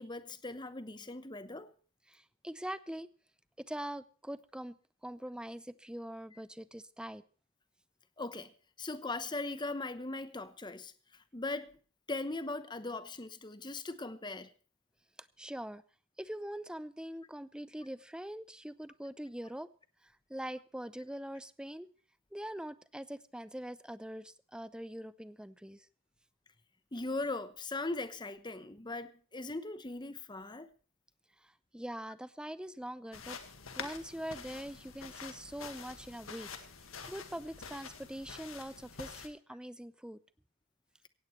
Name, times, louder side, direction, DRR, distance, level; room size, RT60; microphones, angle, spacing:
voice 1, 0.0-1.7 8.2-8.5 8.8-10.9 11.3-11.7 12.1-14.5 26.9-30.7, left 2 dB, 20° left, 1.0 m, -39 dB
voice 2, 2.1-3.1 3.6-7.2 15.2-15.8 16.2-19.7 20.0-21.9 22.3-25.9 31.4-33.4 33.8-36.5 37.1-40.2, right 1 dB, 5° right, 0.6 m, -43 dB
sound 1, 33.1-39.3, left 5 dB, 75° left, 1.9 m, -47 dB
17.5 x 16.0 x 3.2 m
head